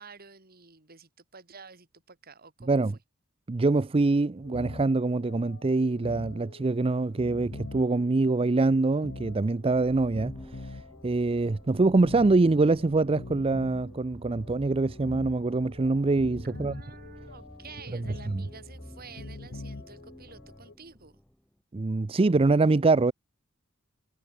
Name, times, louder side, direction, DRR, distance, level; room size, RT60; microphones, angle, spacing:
voice 1, 0.0-2.8 16.4-21.2, right 5 dB, 45° right, 3.6 m, -50 dB
voice 2, 3.5-16.8 18.3-18.4 21.7-23.1, right 3 dB, 25° right, 0.4 m, -24 dB
sound 1, 4.4-20.7, left 2 dB, 65° left, 1.1 m, -45 dB
sound 2, 9.6-21.5, equal, 5° left, 1.6 m, -49 dB
head